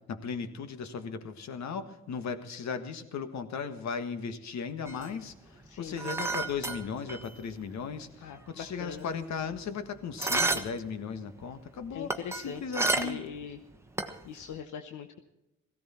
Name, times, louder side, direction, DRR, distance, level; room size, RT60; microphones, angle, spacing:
voice 1, 0.0-13.2, left 6 dB, 65° left, 9 dB, 1.6 m, -37 dB
sound 1, 4.9-7.5 7.8-7.9 8.2-9.8 10.2-10.9 11.1-13.4 13.7-14.4, right 2 dB, 10° right, 1.3 m, -31 dB
voice 2, 5.7-6.0 8.2-9.1 11.9-12.6 13.0-13.6 14.2-15.2, left 7 dB, 80° left, 7 dB, 1.0 m, -41 dB
17.0 x 15.0 x 4.3 m, 0.93 s
cardioid pair, 90°, 30 cm